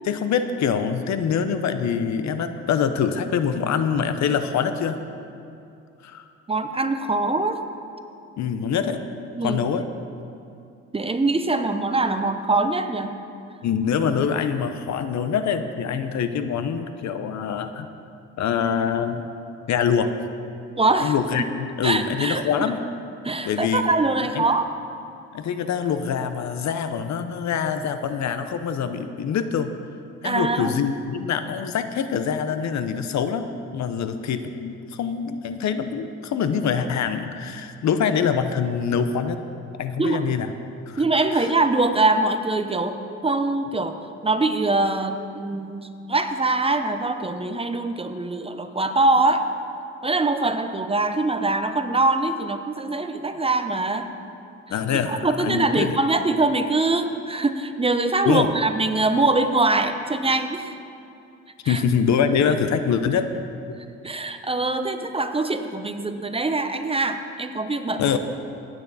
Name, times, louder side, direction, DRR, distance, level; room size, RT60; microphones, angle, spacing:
voice 1, 0.1-5.0 6.0-6.3 8.4-9.0 9.4-9.9 13.6-17.9 18.4-19.3 19.7-20.1 21.0-22.8 23.5-23.8 24.1-24.5 25.3-29.7 30.2-39.4 39.8-40.5 40.9-41.0 41.3-41.5 54.7-56.0 58.2-58.5 61.6-63.3 68.0-68.2, left 7 dB, 65° left, 9 dB, 0.8 m, -24 dB
voice 2, 6.5-7.6 9.3-9.6 10.9-13.1 20.8-21.1 21.8-22.5 23.2-24.7 30.2-30.8 40.0-40.2 41.0-49.5 50.0-54.1 55.1-60.7 61.6-61.8 64.0-68.1, right 2 dB, 20° right, 8 dB, 0.7 m, -23 dB
17.0 x 9.1 x 4.2 m, 2.6 s
cardioid pair, 90°, 30 cm